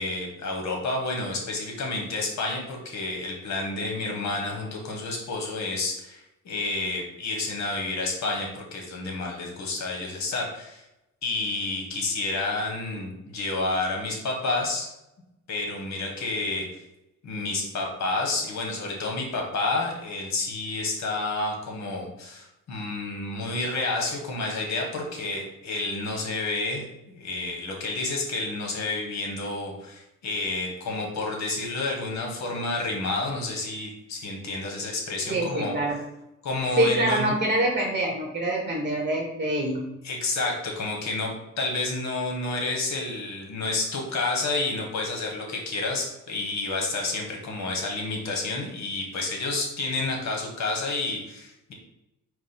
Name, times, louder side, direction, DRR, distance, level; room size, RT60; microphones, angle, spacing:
voice 1, 0.0-10.8 11.2-14.9 15.5-16.7 17.2-35.7 36.4-37.4 40.0-41.3 41.6-51.7, left 2 dB, 65° left, 0 dB, 1.3 m, -30 dB
voice 2, 35.3-36.0 36.8-39.8, right 1 dB, 25° right, -1 dB, 1.0 m, -25 dB
4.8 x 2.2 x 4.3 m, 0.90 s
cardioid pair, 90°, 30 cm